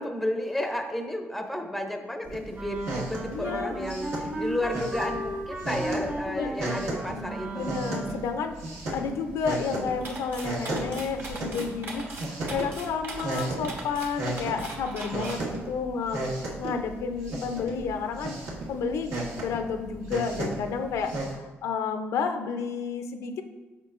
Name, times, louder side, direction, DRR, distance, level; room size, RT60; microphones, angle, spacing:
voice 1, 0.0-7.7, left 1 dB, ahead, 4 dB, 0.5 m, -32 dB
sound 1, 2.2-21.3, right 2 dB, 80° right, 1.6 m, -35 dB
Wind instrument woodwind instrument, 2.5-8.3, right 1 dB, 30° right, 1.4 m, -35 dB
voice 2, 3.3-3.8 6.3-6.5 7.5-8.6 8.9-16.2 16.6-23.4, left 5 dB, 85° left, 7 dB, 0.5 m, -31 dB
sound 2, 10.0-15.4, right 2 dB, 50° right, 1.0 m, -39 dB
7.4 x 5.3 x 2.5 m, 1.1 s
cardioid pair, 135°, 5 cm